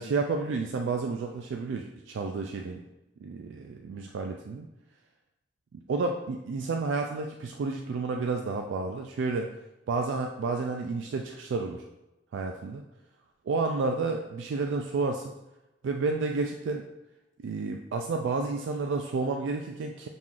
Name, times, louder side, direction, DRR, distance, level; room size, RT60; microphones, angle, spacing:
voice 1, 0.0-2.8 3.2-4.7 5.9-9.5 9.9-11.8 12.3-12.8 13.5-15.3 15.8-16.8 17.4-20.1, right 4 dB, 75° right, 3 dB, 0.3 m, -30 dB
6.0 x 3.7 x 2.4 m, 0.97 s
head